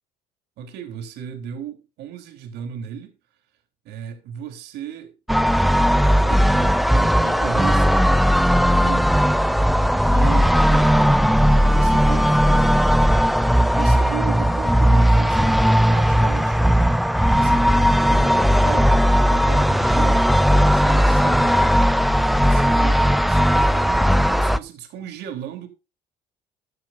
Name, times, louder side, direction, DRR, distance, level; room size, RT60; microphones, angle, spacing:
voice 1, 0.6-3.2 3.8-5.2 6.2-8.0 8.6-9.1 10.0-11.2 11.5-13.1 13.7-15.6 15.9-16.7 17.3-20.3 20.7-21.7 22.4-25.7, right 9 dB, 80° right, 3.4 m, -35 dB
sound 1, 5.3-24.6, equal, ahead, 0.6 m, -17 dB
14.0 x 13.5 x 2.6 m
cardioid pair, 110°, 17 cm